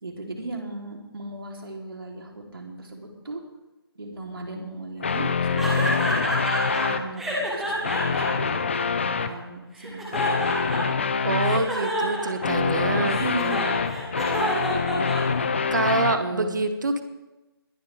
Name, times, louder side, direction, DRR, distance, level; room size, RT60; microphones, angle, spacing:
voice 1, 0.0-3.4 3.9-6.1 6.9-8.6 9.0-10.3 13.0-15.0 16.2-16.5, right 2 dB, 65° right, 1 dB, 3.2 m, -37 dB
sound 1, 5.0-7.0 7.7-9.3 10.1-11.7 12.4-16.2, left 5 dB, 30° left, 0.6 m, -25 dB
sound 2, 5.6-6.8 7.2-9.3 9.8-11.0 11.4-15.7, right 1 dB, ahead, 1.3 m, -29 dB
voice 2, 11.2-13.2 15.7-17.0, right 3 dB, 50° right, 8 dB, 1.5 m, -25 dB
21.0 x 11.5 x 3.4 m, 1.0 s
figure-of-eight pair, 170°, 13 cm